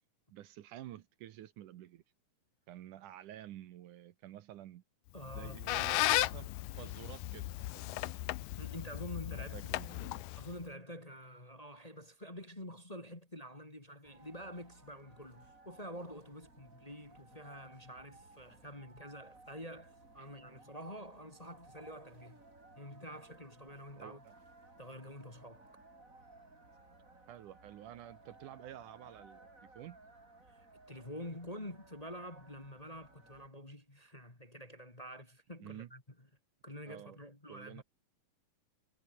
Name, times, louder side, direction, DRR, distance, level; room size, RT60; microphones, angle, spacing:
voice 1, 0.3-2.0 2.7-4.8 5.3-6.5 6.8-8.1 9.3-10.2 20.2-20.3 23.9-24.3 27.3-29.5 29.8-30.0 35.6-35.9 36.9-37.2 37.5-37.8, right 12 dB, 70° right, 2.5 m, -50 dB
voice 2, 5.1-5.6 8.6-9.6 10.4-22.4 22.8-24.2 24.8-25.8 30.5-36.0 36.6-37.8, equal, 10° left, 2.2 m, -48 dB
Squeak, 5.2-10.6, left 17 dB, 80° left, 2.4 m, -36 dB
sound 1, 14.0-33.5, right 2 dB, 20° right, 5.3 m, -60 dB
omnidirectional pair, 3.9 m